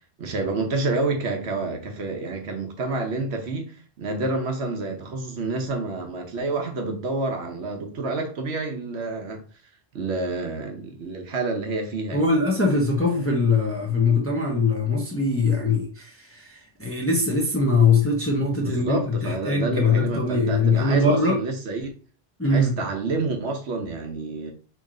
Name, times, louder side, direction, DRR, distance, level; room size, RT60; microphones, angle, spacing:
voice 1, 0.2-9.4 9.9-12.3 18.5-21.9 22.5-24.5, right 3 dB, 65° right, 1.0 m, -28 dB
voice 2, 12.1-21.4 22.4-22.7, left 3 dB, 15° left, 0.6 m, -22 dB
3.1 x 3.1 x 3.7 m
omnidirectional pair, 1.2 m